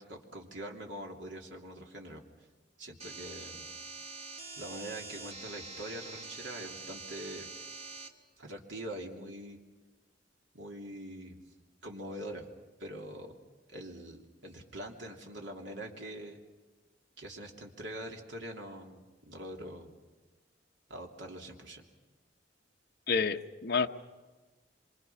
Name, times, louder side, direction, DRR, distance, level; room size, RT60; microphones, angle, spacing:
voice 1, 0.0-2.2 2.8-3.7 4.6-7.5 8.4-9.6 10.5-11.4 11.8-12.5 12.8-13.3 13.7-16.4 17.2-20.0 20.9-21.8, right 1 dB, 80° right, 1 dB, 3.0 m, -44 dB
sound 1, 3.0-8.1, right 3 dB, 35° right, 1.8 m, -45 dB
voice 2, 23.1-23.9, left 5 dB, 55° left, 5 dB, 1.0 m, -29 dB
26.5 x 25.0 x 5.8 m, 1.3 s
head